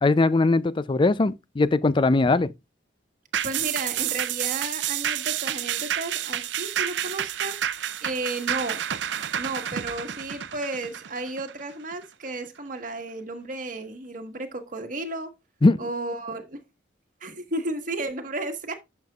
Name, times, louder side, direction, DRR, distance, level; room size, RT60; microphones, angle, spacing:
voice 1, 0.0-2.5 15.6-15.8, left 3 dB, 25° left, 0.4 m, -20 dB
sound 1, 3.3-12.0 12.5-12.6, right 10 dB, 75° right, 0.5 m, -29 dB
voice 2, 3.4-8.8 9.4-15.3 15.8-16.6 17.2-18.7, right 2 dB, 45° right, 1.4 m, -33 dB
10.5 x 6.6 x 2.4 m
head